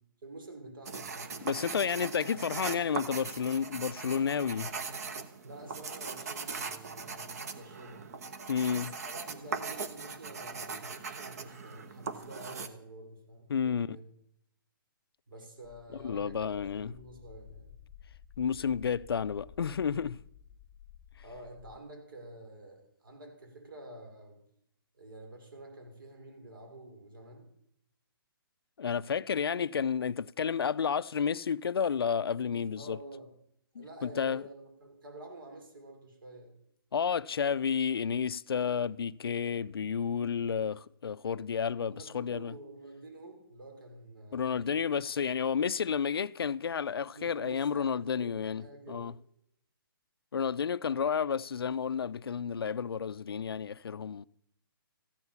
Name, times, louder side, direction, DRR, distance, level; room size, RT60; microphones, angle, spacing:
voice 1, 0.2-1.4 5.4-8.1 8.7-14.0 15.3-17.7 21.2-24.4 25.0-27.5 32.8-33.3 33.8-36.6 41.9-44.7 47.1-49.1, right 1 dB, 65° right, 5.4 m, -49 dB
sound 1, 0.9-12.7, right 5 dB, 45° right, 1.2 m, -40 dB
voice 2, 1.4-4.8 8.5-8.9 13.5-14.0 15.9-16.9 18.4-20.2 28.8-33.0 33.8-34.4 36.9-42.5 44.3-49.1 50.3-54.2, left 7 dB, 90° left, 0.5 m, -31 dB
sound 2, 15.6-21.8, left 9 dB, 25° left, 1.0 m, -53 dB
15.0 x 9.7 x 7.1 m
hypercardioid pair, 170°, 12 cm